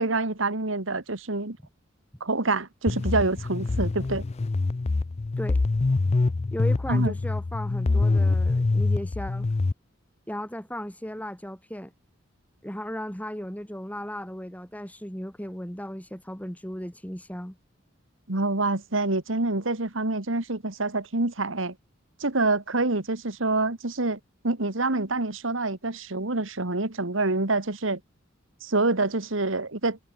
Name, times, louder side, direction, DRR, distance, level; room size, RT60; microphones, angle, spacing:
voice 1, 0.0-1.6 2.2-4.2 6.9-7.1 18.3-21.8 22.2-24.2 24.4-28.0 28.6-30.0, right 2 dB, 70° right, 2.1 m, -26 dB
sound 1, 2.9-9.7, left 3 dB, 35° left, 0.4 m, -25 dB
voice 2, 6.5-9.5 10.3-11.9 12.6-17.6, equal, 10° left, 6.0 m, -36 dB
head